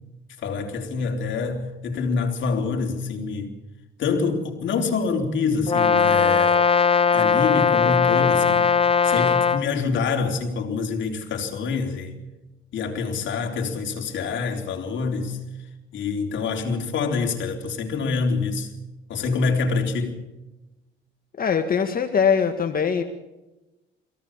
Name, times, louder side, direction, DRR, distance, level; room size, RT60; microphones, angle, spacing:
voice 1, 0.4-3.5 4.0-6.6 7.1-8.7 9.0-12.1 12.7-15.4 15.9-18.7 19.1-20.1, left 4 dB, 70° left, 3.7 m, -26 dB
Brass instrument, 5.7-9.7, left 6 dB, 30° left, 1.6 m, -19 dB
voice 2, 21.4-23.0, left 6 dB, 45° left, 1.7 m, -22 dB
23.5 x 17.5 x 7.3 m
cardioid pair, 90°, 20 cm